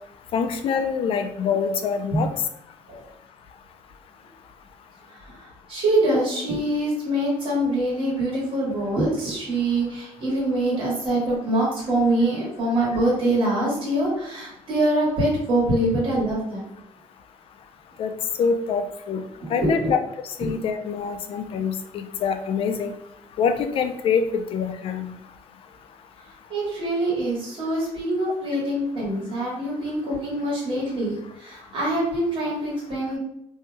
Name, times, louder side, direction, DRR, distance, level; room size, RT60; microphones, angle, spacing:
voice 1, 0.3-2.3 18.0-18.1 18.4-19.2 19.5-20.0 20.4-22.9 23.4-25.1, left 6 dB, 55° left, 7 dB, 0.4 m, -25 dB
voice 2, 5.1-16.7 19.6-19.9 26.5-33.2, right 1 dB, 50° right, -5 dB, 1.4 m, -24 dB
3.0 x 2.7 x 2.2 m, 0.80 s
cardioid pair, 130°, 11 cm